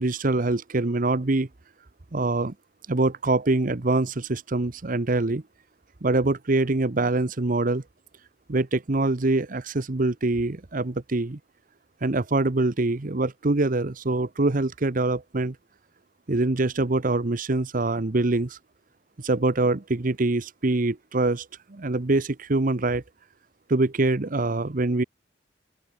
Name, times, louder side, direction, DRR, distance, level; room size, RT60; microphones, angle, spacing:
voice 1, 0.0-1.5 2.1-2.5 2.9-5.4 6.0-7.8 8.5-11.4 12.0-15.6 16.3-18.6 19.2-23.0 23.7-25.0, right 2 dB, 50° right, 1.0 m, -24 dB
open air
head